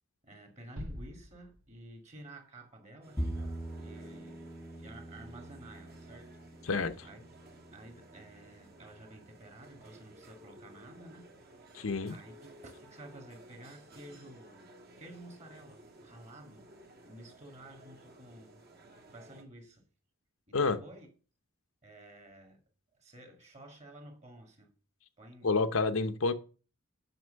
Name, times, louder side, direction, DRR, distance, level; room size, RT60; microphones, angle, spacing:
voice 1, 0.2-3.2 3.8-4.5 4.8-6.6 7.0-7.2 7.7-11.3 11.6-11.8 12.1-16.6 17.0-18.7 19.1-19.9 20.5-21.1 21.8-22.6 22.9-24.7 25.2-25.6, right 1 dB, 35° right, 2.1 m, -52 dB
sound 1, 0.8-2.2, equal, 90° right, 2.4 m, -45 dB
sound 2, 3.0-19.4, right 1 dB, 50° right, 1.8 m, -56 dB
Bowed string instrument, 3.2-9.5, right 1 dB, 5° left, 0.5 m, -43 dB
voice 2, 6.6-7.1 11.7-12.2 20.5-20.8 25.4-26.3, left 4 dB, 75° left, 0.8 m, -29 dB
7.9 x 6.1 x 6.4 m
head